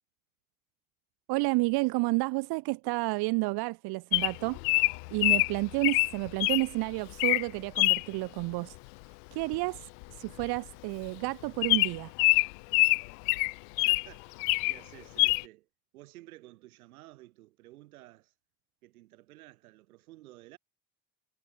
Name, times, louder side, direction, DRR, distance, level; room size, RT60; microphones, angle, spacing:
voice 1, 1.3-4.6 5.1-8.8 9.3-12.1, right 24 dB, 60° right, 0.9 m, -30 dB
Bird vocalization bird call bird song, 4.1-6.6 7.1-7.4 7.8-8.0 9.5-9.8 10.0-10.1 10.4-10.6 11.0-11.1 11.6-14.1 14.4-14.8 15.2-15.4, left 40 dB or more, 65° left, 0.5 m, -25 dB
voice 2, 13.8-15.7 15.9-18.3 18.8-20.6, right 17 dB, 80° right, 3.8 m, -53 dB
hypercardioid pair, 70°, 43 cm